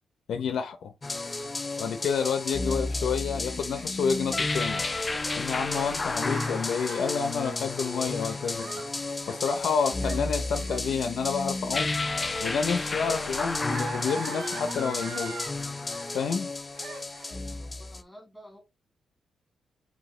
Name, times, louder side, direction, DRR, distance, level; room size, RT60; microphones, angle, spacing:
voice 1, 0.3-0.9 1.8-4.8 5.4-8.7 9.3-12.0 12.4-15.4 16.1-16.5, left 6 dB, 65° left, 0.6 m, -29 dB
sound 1, 1.0-18.0, left 3 dB, 20° left, 0.4 m, -32 dB
Gasp, 3.1-15.5 15.9-16.5 16.7-17.4, right 4 dB, 75° right, 1.1 m, -43 dB
voice 2, 17.6-18.6, equal, ahead, 1.6 m, -50 dB
4.8 x 3.2 x 3.2 m
wide cardioid pair, 165°, 0 cm